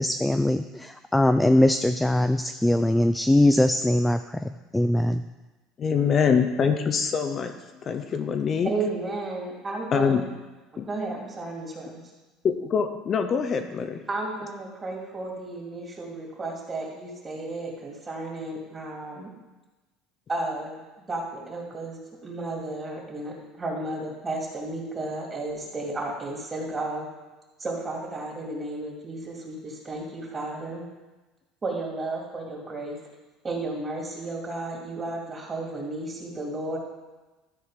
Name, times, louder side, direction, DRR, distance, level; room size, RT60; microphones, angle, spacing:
voice 1, 0.0-5.2, left 1 dB, 5° left, 9 dB, 0.3 m, -22 dB
voice 2, 5.8-7.5 7.8-8.7 9.9-10.2 10.8-10.9 12.4-14.0, left 6 dB, 35° left, 7 dB, 0.6 m, -24 dB
voice 3, 8.6-10.3 10.9-12.0 14.1-19.3 20.3-20.8 21.1-27.1 27.6-30.9 31.6-33.0 33.4-36.8, right 2 dB, 25° right, -1 dB, 2.5 m, -33 dB
13.0 x 4.7 x 5.0 m, 1.1 s
supercardioid pair, 115°, 0 cm